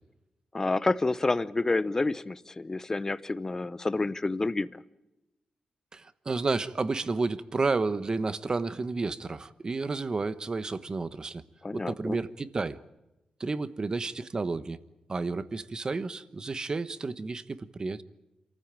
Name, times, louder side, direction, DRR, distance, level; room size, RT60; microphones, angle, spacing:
voice 1, 0.5-4.8 11.6-12.2, left 2 dB, 20° left, 16 dB, 0.8 m, -29 dB
voice 2, 5.9-11.4 11.7-12.8 13.4-14.8 15.1-18.0, right 3 dB, 30° right, 14 dB, 1.1 m, -31 dB
27.5 x 14.5 x 8.9 m, 0.96 s
wide cardioid pair, 125°, 2 cm